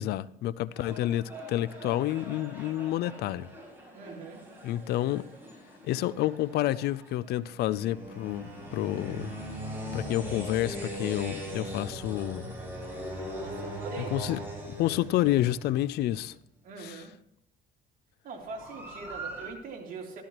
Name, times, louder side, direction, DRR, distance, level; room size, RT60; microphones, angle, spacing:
voice 1, 0.0-3.5 4.6-5.2 5.8-9.3 9.9-12.5 14.0-14.4 14.7-16.3 16.8-17.1, left 14 dB, 75° left, 0.4 m, -29 dB
sound 1, 0.7-16.3 18.4-19.5, equal, 10° right, 6.2 m, -40 dB
voice 2, 3.9-4.4 13.4-14.2 16.6-17.1 18.2-20.2, right 4 dB, 55° right, 3.1 m, -42 dB
13.5 x 13.5 x 3.0 m
cardioid pair, 110°, 17 cm